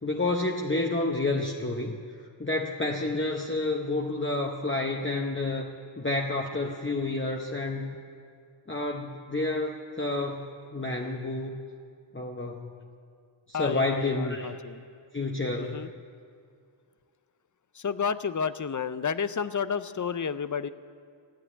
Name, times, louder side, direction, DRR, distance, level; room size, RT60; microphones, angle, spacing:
voice 1, 0.0-2.0 2.4-8.0 8.7-11.6 12.1-12.7 13.5-14.5 15.1-15.9, left 2 dB, 25° left, 0 dB, 0.9 m, -29 dB
voice 2, 13.5-14.8 15.6-15.9 17.8-20.7, left 6 dB, 40° left, 14 dB, 0.5 m, -31 dB
14.0 x 9.4 x 9.8 m, 2.3 s
wide cardioid pair, 40°, 47 cm